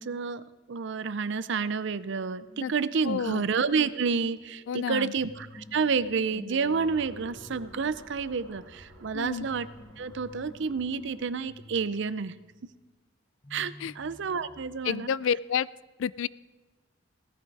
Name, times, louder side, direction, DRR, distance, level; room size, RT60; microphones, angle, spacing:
voice 1, 0.0-9.7 10.0-12.3 13.5-15.1, right 5 dB, 65° right, 15 dB, 0.6 m, -29 dB
sound 1, 2.5-12.9 13.4-15.4, left 1 dB, 25° left, 0.9 m, -51 dB
voice 2, 3.0-3.4 4.7-5.1 9.1-9.5 13.8-13.9 14.8-15.7 16.0-16.3, left 7 dB, 70° left, 20 dB, 0.3 m, -29 dB
sound 2, 6.8-11.8, right 1 dB, 80° right, 2.3 m, -55 dB
17.0 x 14.0 x 4.7 m, 1.2 s
head